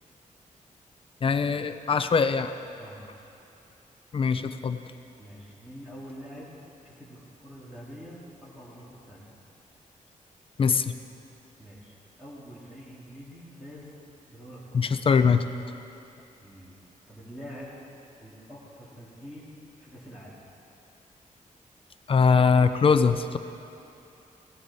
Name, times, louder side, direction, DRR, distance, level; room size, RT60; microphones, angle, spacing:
voice 1, 1.2-2.5 4.1-4.8 10.6-10.9 14.7-15.4 22.1-23.4, left 5 dB, 40° left, 10 dB, 0.5 m, -22 dB
voice 2, 5.2-6.5 6.8-9.3 11.6-13.9 14.3-15.0 16.4-16.8 17.1-17.7 18.2-20.4, equal, 5° right, -9 dB, 2.1 m, -45 dB
17.0 x 13.0 x 4.1 m, 2.7 s
wide cardioid pair, 155°, 14 cm